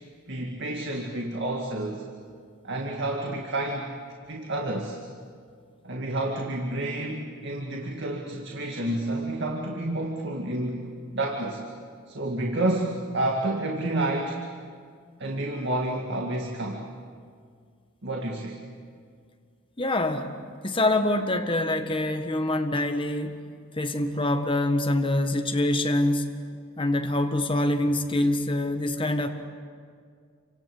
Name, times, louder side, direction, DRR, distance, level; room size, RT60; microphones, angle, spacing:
voice 1, 0.3-2.0 2.6-3.9 4.3-5.0 5.8-10.9 11.1-11.6 12.1-14.4 15.2-16.8 18.0-18.6, right 1 dB, 55° right, 1 dB, 2.2 m, -29 dB
voice 2, 19.8-20.3 20.6-23.4 23.8-26.3 26.8-29.3, left 1 dB, 25° left, 5 dB, 1.5 m, -25 dB
29.0 x 25.5 x 7.9 m, 2.1 s
head